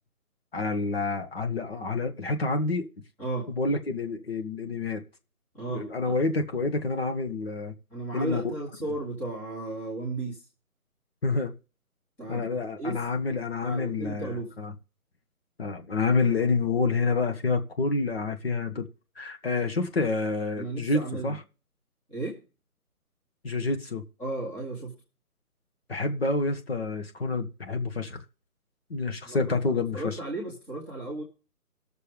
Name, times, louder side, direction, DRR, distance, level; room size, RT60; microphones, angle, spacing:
voice 1, 0.5-2.9 3.6-5.0 5.7-7.7 8.1-8.5 11.2-11.5 12.3-14.7 15.6-18.9 19.2-21.4 23.4-24.0 25.9-28.2 28.9-30.2, left 3 dB, 40° left, 1.4 m, -28 dB
voice 2, 5.5-6.1 7.9-10.4 12.2-13.0 13.6-14.5 20.5-21.3 22.1-22.4 24.2-24.9 29.2-31.2, right 2 dB, 5° left, 1.4 m, -35 dB
19.0 x 6.7 x 3.4 m
figure-of-eight pair, 160°, 45 cm